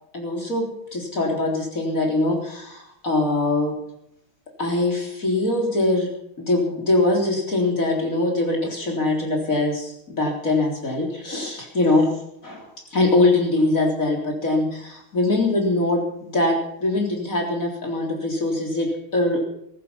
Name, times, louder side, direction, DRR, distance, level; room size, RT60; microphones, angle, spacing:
voice 1, 0.1-0.7 0.9-3.7 4.6-6.1 6.4-12.1 12.4-19.4, left 2 dB, 40° left, 1 dB, 4.1 m, -22 dB
15.0 x 14.0 x 5.7 m, 0.75 s
omnidirectional pair, 2.3 m